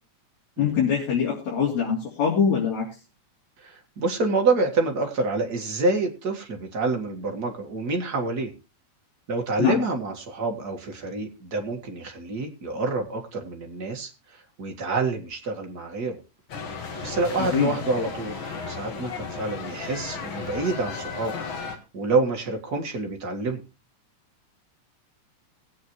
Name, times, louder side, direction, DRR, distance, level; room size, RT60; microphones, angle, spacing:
voice 1, 0.6-2.9 9.6-9.8 17.4-17.7, left 7 dB, 70° left, -4 dB, 4.4 m, -23 dB
voice 2, 3.6-8.5 9.3-16.2 17.0-21.3 21.9-23.6, right 3 dB, 35° right, 2 dB, 2.0 m, -27 dB
sound 1, 16.5-21.8, left 5 dB, 50° left, 2.2 m, -34 dB
20.0 x 8.7 x 3.1 m, 0.30 s
omnidirectional pair, 3.4 m